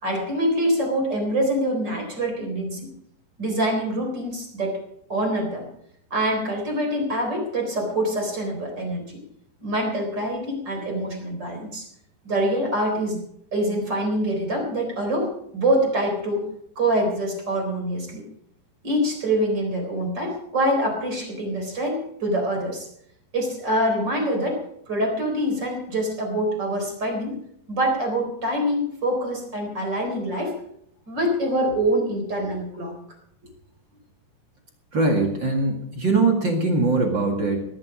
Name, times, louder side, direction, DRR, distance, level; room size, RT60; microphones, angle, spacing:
voice 1, 0.0-2.9 3.4-4.8 5.1-5.7 6.1-9.2 9.6-11.8 12.2-13.2 13.5-16.5 16.8-18.2 18.8-22.9 23.3-27.4 27.7-30.6 31.1-32.9, right 1 dB, 25° right, 3 dB, 4.1 m, -25 dB
voice 2, 34.9-37.6, right 3 dB, 45° right, 2 dB, 1.5 m, -21 dB
18.5 x 12.0 x 5.1 m, 0.71 s
omnidirectional pair, 5.3 m